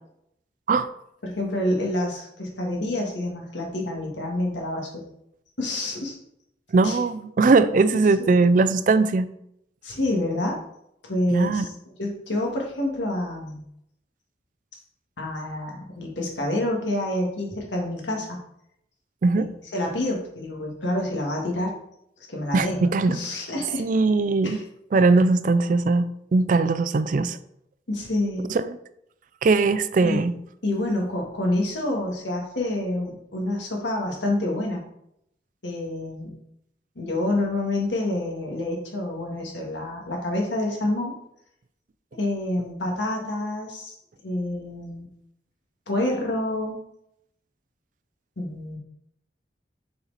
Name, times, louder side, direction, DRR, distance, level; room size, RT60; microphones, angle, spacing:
voice 1, 1.2-5.0 5.6-6.2 6.8-7.0 7.9-8.3 9.8-10.6 11.0-11.7 12.0-13.6 15.2-18.4 19.3-19.4 19.7-21.8 22.3-22.8 23.1-23.8 24.4-24.6 27.9-28.6 30.0-30.3 30.6-34.8 35.6-36.3 37.0-41.1 42.2-43.9 44.2-45.1 45.9-46.8 48.4-48.8, left 1 dB, 85° left, 0 dB, 1.8 m, -28 dB
voice 2, 6.7-9.3 11.3-11.7 19.2-19.5 22.5-23.2 23.8-24.6 24.9-27.4 28.5-28.8 29.4-30.3, right 3 dB, 45° right, 14 dB, 0.3 m, -20 dB
6.7 x 4.4 x 4.1 m, 0.76 s
head